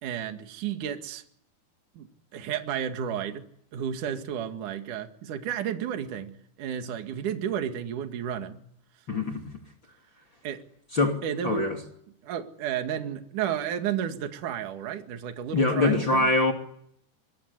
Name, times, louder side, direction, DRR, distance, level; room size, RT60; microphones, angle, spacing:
voice 1, 0.0-1.2 2.0-2.1 2.3-3.4 3.7-6.3 6.6-8.6 10.4-10.6 11.2-11.7 12.2-16.3, right 9 dB, 55° right, 3.2 m, -32 dB
voice 2, 9.1-9.4 10.9-11.2 11.4-11.8 15.5-16.5, left 2 dB, 35° left, 2.8 m, -23 dB
26.0 x 21.0 x 9.6 m
omnidirectional pair, 4.8 m